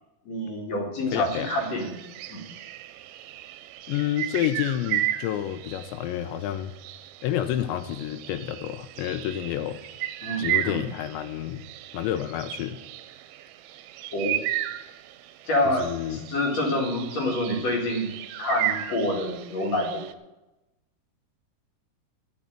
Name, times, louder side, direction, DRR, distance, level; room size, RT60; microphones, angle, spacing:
voice 1, 0.3-2.0 2.3-2.4 10.2-10.8 14.1-14.4 15.5-18.1 18.4-20.0, left 1 dB, 45° left, 0 dB, 2.5 m, -27 dB
voice 2, 1.1-1.5 3.9-6.7 7.2-9.8 10.4-11.6 11.9-12.8 15.8-16.2, left 11 dB, 80° left, 10 dB, 2.8 m, -29 dB
sound 1, 1.2-20.1, right 13 dB, 85° right, 3.0 m, -35 dB
10.5 x 7.0 x 8.8 m, 0.97 s
omnidirectional pair, 5.4 m